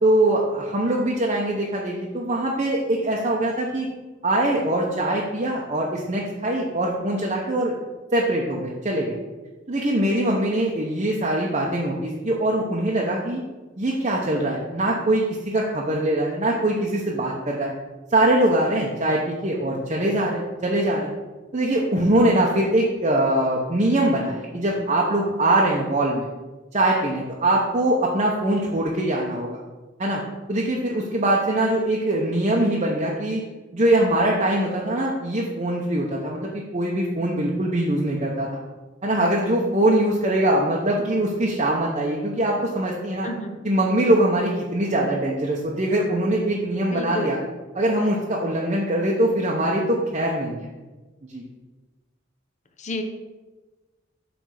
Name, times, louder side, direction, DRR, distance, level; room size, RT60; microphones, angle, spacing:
voice 1, 0.0-3.9 4.2-7.7 8.1-9.2 9.7-13.4 13.8-17.7 18.1-21.1 21.5-26.3 26.7-29.6 30.0-30.2 30.5-33.4 33.7-38.6 39.0-43.3 43.6-47.4 47.7-50.7 51.3-51.4, right 1 dB, 35° right, -3 dB, 0.8 m, -22 dB
voice 2, 43.2-43.6 46.9-47.4 52.8-53.0, left 1 dB, 35° left, 5 dB, 0.8 m, -30 dB
8.1 x 3.5 x 6.4 m, 1.2 s
head